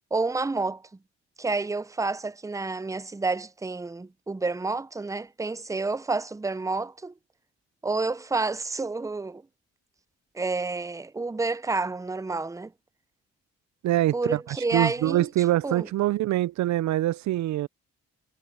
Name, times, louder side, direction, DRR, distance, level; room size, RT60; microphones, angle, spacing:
voice 1, 0.1-0.8 1.4-7.1 7.8-9.4 10.3-12.7 14.1-15.3 15.6-15.9, right 3 dB, 10° right, 0.6 m, -29 dB
voice 2, 13.8-17.7, right 14 dB, 70° right, 0.5 m, -24 dB
cardioid pair, 65°, 30 cm